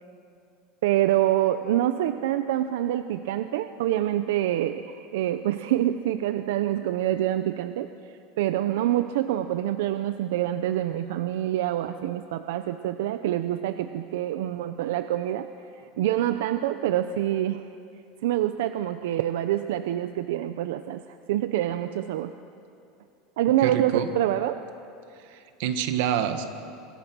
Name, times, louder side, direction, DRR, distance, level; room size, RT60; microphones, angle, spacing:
voice 1, 0.8-15.5 16.0-17.7 18.2-21.0 21.3-22.3 23.4-24.6, right 12 dB, 85° right, 10 dB, 0.8 m, -26 dB
voice 2, 23.6-24.1 25.3-26.5, right 9 dB, 60° right, 8 dB, 1.8 m, -27 dB
27.0 x 25.0 x 6.2 m, 2.6 s
supercardioid pair, 180°, 0 cm